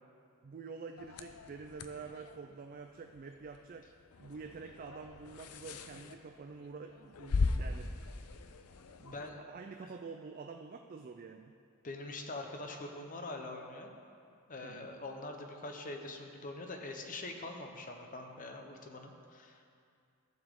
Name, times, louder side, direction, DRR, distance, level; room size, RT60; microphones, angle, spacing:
voice 1, 0.4-3.9 4.2-8.0 9.0-11.5 14.6-14.9, right 4 dB, 40° right, 5 dB, 0.3 m, -47 dB
sound 1, 1.0-9.3, left 3 dB, 90° left, 0.5 m, -40 dB
voice 2, 11.8-13.9 14.5-19.7, left 2 dB, 35° left, 3 dB, 0.8 m, -44 dB
14.5 x 7.1 x 3.7 m, 2.4 s
head